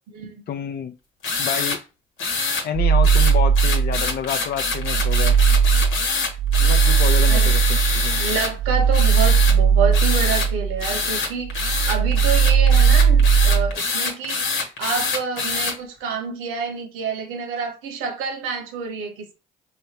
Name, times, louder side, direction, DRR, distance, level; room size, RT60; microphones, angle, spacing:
voice 1, 0.5-0.9 1.4-1.8 2.6-5.4 6.6-8.2, left 8 dB, 50° left, 0.5 m, -29 dB
sound 1, 1.2-1.8 2.2-2.7 3.0-8.5 8.9-9.6 9.9-10.5 10.8-15.7, left 4 dB, 75° left, 1.2 m, -25 dB
sound 2, 2.8-4.2 4.6-11.1 11.4-13.7, right 6 dB, 30° right, 0.4 m, -18 dB
voice 2, 8.1-19.3, right 5 dB, 80° right, 1.1 m, -28 dB
6.3 x 2.2 x 2.9 m
hypercardioid pair, 55°, 21 cm